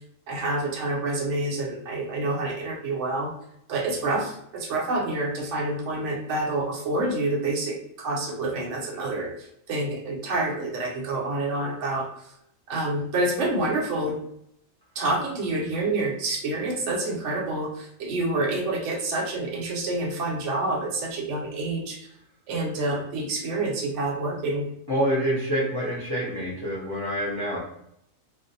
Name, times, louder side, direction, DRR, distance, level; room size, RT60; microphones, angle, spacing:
voice 1, 0.3-3.3 3.7-12.1 12.7-14.2 15.0-22.0 22.5-24.7, right 2 dB, 70° right, 0 dB, 0.8 m, -28 dB
voice 2, 24.9-27.6, equal, 35° left, -7 dB, 0.3 m, -26 dB
2.5 x 2.1 x 2.5 m, 0.74 s
omnidirectional pair, 1.4 m